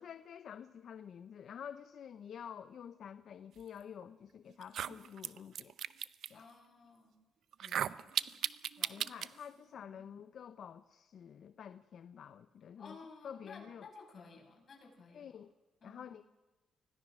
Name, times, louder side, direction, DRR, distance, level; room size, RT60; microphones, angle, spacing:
voice 1, 0.0-5.7 6.3-6.4 8.9-13.0 13.2-13.9 15.1-15.5 15.8-16.2, left 8 dB, 60° left, 0.7 m, -49 dB
sound 1, 4.0-4.1 4.6-6.3 7.5-9.3, right 9 dB, 65° right, 0.6 m, -36 dB
voice 2, 6.3-7.2 7.6-8.1 8.8-9.1 9.8-10.0 12.8-15.4 15.8-16.2, left 4 dB, 45° left, 6.3 m, -55 dB
25.5 x 17.0 x 6.3 m
cardioid pair, 90°, 0 cm